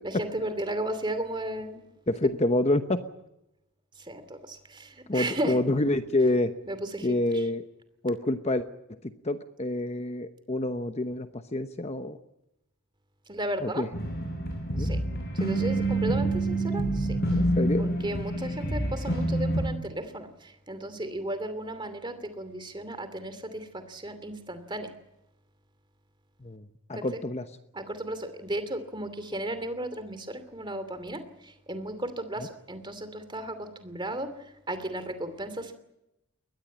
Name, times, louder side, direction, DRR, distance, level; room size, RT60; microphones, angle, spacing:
voice 1, 0.0-1.8 4.0-5.6 6.6-7.4 13.3-13.9 14.8-15.0 15.3-17.2 17.8-24.9 26.9-27.0 27.7-35.7, right 1 dB, 20° right, 10 dB, 2.7 m, -35 dB
voice 2, 2.1-3.0 5.1-6.5 7.0-7.6 8.0-8.6 9.2-12.2 13.6-13.9 14.7-14.9 17.4-17.8 26.4-26.6 26.9-27.4, left 1 dB, 30° left, 9 dB, 0.9 m, -27 dB
sound 1, 13.9-19.7, right 1 dB, 45° left, 6.6 m, -27 dB
22.5 x 19.5 x 8.7 m, 0.88 s
head